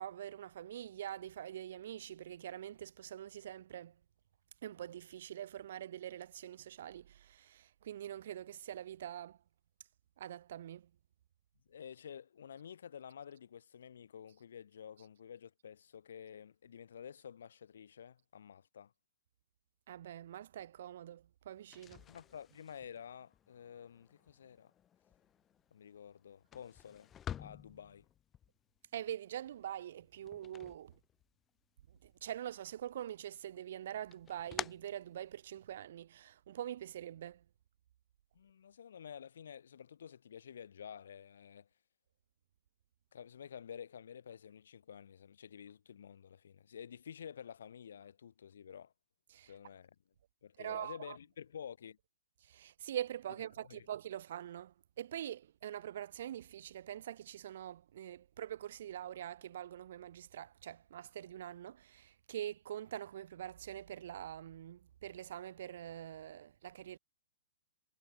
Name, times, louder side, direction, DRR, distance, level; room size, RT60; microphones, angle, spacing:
voice 1, 0.0-3.9 4.6-9.4 10.2-10.8 19.9-22.0 28.9-30.9 32.2-37.4 49.3-49.5 50.6-51.2 52.5-67.0, right 11 dB, 55° right, 0.6 m, -44 dB
voice 2, 11.7-18.9 22.1-24.7 25.7-27.1 27.4-28.1 38.3-41.7 43.1-48.9 49.4-49.9 50.4-52.0 53.4-53.9, left 8 dB, 75° left, 7.9 m, -51 dB
sound 1, 21.6-31.6 31.9-32.8 33.1-35.8, left 9 dB, 15° left, 1.5 m, -50 dB
hypercardioid pair, 155°, 0 cm